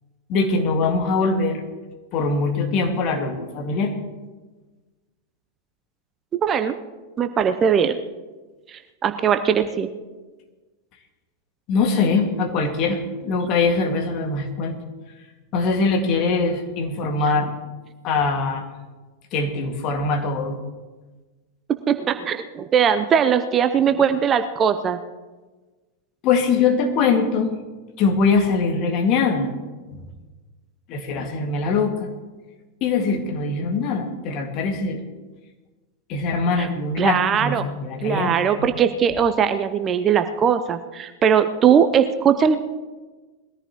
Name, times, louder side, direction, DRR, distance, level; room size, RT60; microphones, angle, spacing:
voice 1, 0.3-1.6 2.1-3.9 11.7-14.8 15.5-17.5 18.0-18.7 19.3-20.6 26.2-27.5 28.0-29.5 29.9-30.0 30.9-32.1 32.8-35.0 36.1-38.7, left 4 dB, 40° left, 4 dB, 1.9 m, -22 dB
voice 2, 6.3-6.7 7.2-8.0 8.7-9.9 21.9-25.0 36.6-36.7 37.0-37.6 38.0-42.6, right 7 dB, 25° right, 10 dB, 0.6 m, -20 dB
21.5 x 14.0 x 3.0 m, 1.3 s
figure-of-eight pair, 90°, 0 cm